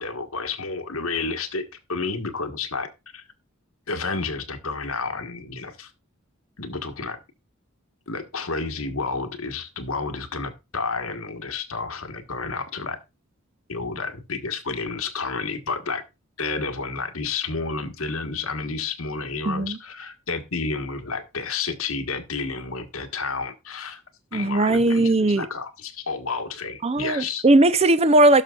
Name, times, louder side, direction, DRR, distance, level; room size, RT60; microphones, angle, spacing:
voice 1, 0.0-1.6 1.9-3.2 3.9-5.9 6.6-7.2 8.1-13.0 13.7-16.0 16.4-24.0 24.3-27.4, left 4 dB, 80° left, 1.5 m, -30 dB
voice 2, 19.5-19.8 24.3-25.5 26.8-28.4, right 2 dB, 30° right, 0.7 m, -18 dB
16.5 x 6.6 x 2.4 m
head